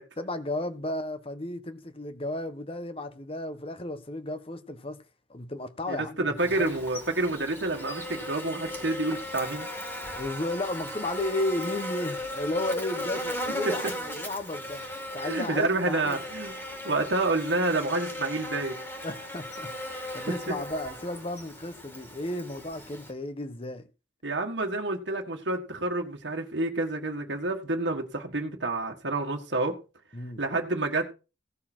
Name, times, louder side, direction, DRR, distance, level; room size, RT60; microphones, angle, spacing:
voice 1, 0.2-5.0 5.3-6.8 10.1-14.9 15.1-16.2 19.0-23.8 30.1-30.4, left 1 dB, 30° left, 1.2 m, -34 dB
voice 2, 5.9-9.7 13.7-13.8 15.2-16.6 16.8-18.8 20.3-20.6 24.2-29.8 30.4-31.1, right 2 dB, 70° right, 1.8 m, -29 dB
Buzz, 6.4-23.1, left 1 dB, 15° left, 2.4 m, -37 dB
17.0 x 6.8 x 4.5 m
head